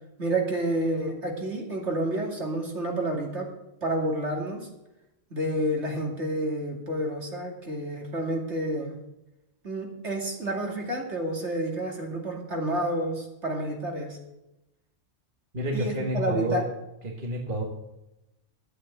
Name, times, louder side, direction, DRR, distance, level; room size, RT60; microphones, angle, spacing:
voice 1, 0.2-3.5 3.8-4.7 5.3-9.0 9.6-14.2 15.7-16.7, right 1 dB, 65° right, 0 dB, 2.9 m, -29 dB
voice 2, 15.5-16.6 17.0-17.6, right 1 dB, 40° right, 1 dB, 1.9 m, -29 dB
12.0 x 8.7 x 8.1 m, 0.92 s
omnidirectional pair, 1.3 m